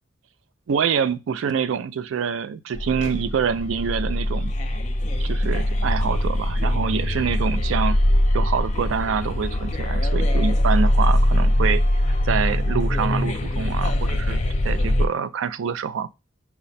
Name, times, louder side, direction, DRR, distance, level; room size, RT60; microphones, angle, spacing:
voice 1, 0.7-4.5 5.2-8.0 8.3-11.8 12.2-16.1, right 6 dB, 85° right, 0.4 m, -26 dB
sound 1, 2.7-15.1, left 1 dB, 35° left, 0.5 m, -22 dB
5.7 x 2.1 x 4.0 m
head